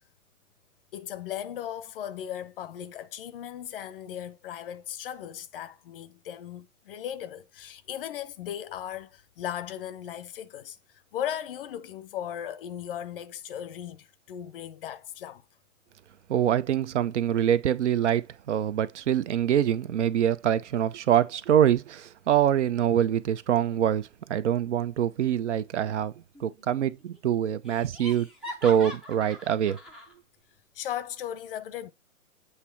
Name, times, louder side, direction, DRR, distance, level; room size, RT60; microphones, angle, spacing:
voice 1, 0.9-10.8 11.1-15.4 30.7-31.9, left 10 dB, 40° left, 0.7 m, -37 dB
voice 2, 16.3-26.1 26.4-28.3 28.6-29.8, right 10 dB, 55° right, 0.7 m, -25 dB
Laughter, 26.3-26.9 27.2-27.3 27.7-30.1, left 1 dB, ahead, 0.5 m, -42 dB
8.2 x 2.8 x 4.5 m
hypercardioid pair, 130°, 43 cm